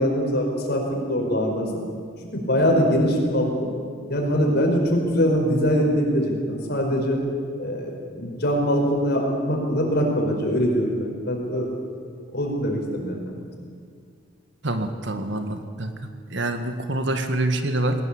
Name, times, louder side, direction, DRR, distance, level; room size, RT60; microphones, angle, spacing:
voice 1, 0.0-1.7 2.3-3.7 4.1-7.2 7.6-11.7 12.3-13.2, equal, 60° left, 1 dB, 5.1 m, -23 dB
voice 2, 14.6-15.9 16.3-18.0, right 1 dB, 65° right, 7 dB, 1.7 m, -26 dB
21.0 x 19.0 x 8.7 m, 2.2 s
head